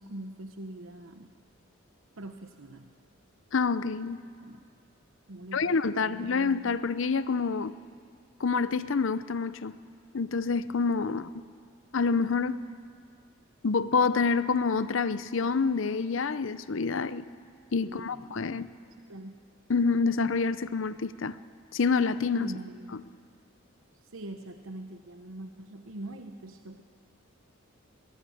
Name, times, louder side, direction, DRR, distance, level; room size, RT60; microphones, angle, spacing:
voice 1, 0.0-1.3 2.2-2.9 4.4-4.6 5.3-6.7 11.1-11.2 17.8-18.7 19.1-19.5 22.4-23.0 24.0-26.8, right 1 dB, 75° right, 1.0 m, -43 dB
voice 2, 3.5-4.2 5.5-7.7 8.4-9.8 10.1-11.2 11.9-12.6 13.6-17.2 17.7-18.7 19.7-21.4 21.7-22.5, left 4 dB, 65° left, 0.6 m, -27 dB
22.5 x 19.5 x 8.6 m
head